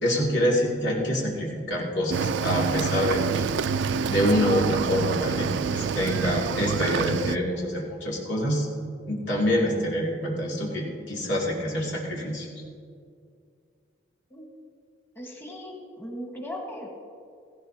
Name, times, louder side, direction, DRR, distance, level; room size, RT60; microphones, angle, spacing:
voice 1, 0.0-3.5 4.1-8.7 9.1-12.5, equal, 85° left, -3 dB, 2.6 m, -26 dB
Cricket / Waves surf, 2.1-7.4, right 6 dB, 85° right, 0.4 m, -27 dB
voice 2, 15.1-16.9, left 1 dB, 10° left, -1 dB, 1.4 m, -38 dB
17.0 x 15.5 x 2.8 m, 2.3 s
head